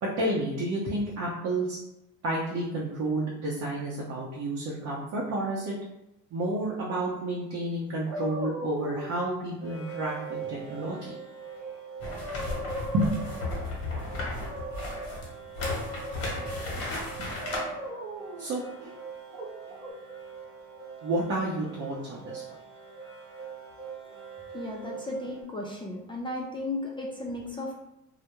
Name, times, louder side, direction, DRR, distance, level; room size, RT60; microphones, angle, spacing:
voice 1, 0.0-1.8 2.2-5.7 6.3-11.2 12.9-13.2 17.2-17.3 18.4-18.9 21.0-22.4, right 1 dB, 50° right, -4 dB, 0.6 m, -30 dB
sound 1, 7.0-7.1 9.6-25.4, right 6 dB, 20° right, 1.2 m, -43 dB
sound 2, 8.1-9.2 11.6-11.7 12.1-13.8 14.3-15.1 15.6-16.9 17.4-18.5 19.3-19.9, equal, 80° right, 0.8 m, -38 dB
sound 3, 12.0-17.6, left 2 dB, 45° left, 1.0 m, -35 dB
voice 2, 24.5-27.8, left 2 dB, 15° left, -2 dB, 0.4 m, -35 dB
2.2 x 2.0 x 2.9 m, 0.89 s
supercardioid pair, 80°, 33 cm